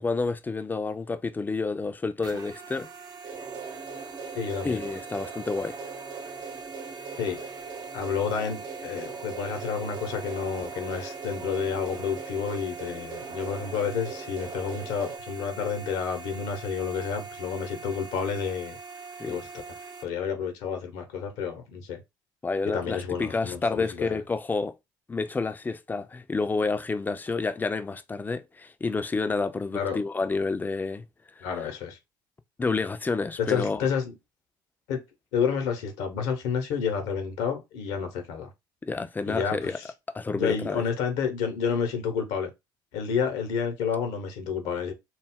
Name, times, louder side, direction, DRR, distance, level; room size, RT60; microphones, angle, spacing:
voice 1, 0.0-2.9 4.6-5.7 19.2-19.4 22.4-24.7 25.1-31.0 31.4-31.5 32.6-33.8 38.8-39.8 40.1-40.8, left 3 dB, 15° left, 0.4 m, -29 dB
sound 1, 2.2-20.0, right 4 dB, 40° right, 0.5 m, -43 dB
sound 2, 3.2-15.2, right 5 dB, 65° right, 0.9 m, -40 dB
voice 2, 4.3-4.8 7.2-7.4 7.9-18.8 19.3-19.5 20.0-22.0 22.7-24.2 29.7-30.0 31.4-32.0 33.4-34.2 34.9-35.0 35.3-38.5 39.3-39.9 40.3-42.5 42.9-44.9, left 6 dB, 70° left, 0.8 m, -30 dB
2.3 x 2.0 x 3.5 m
hypercardioid pair, 60°, 11 cm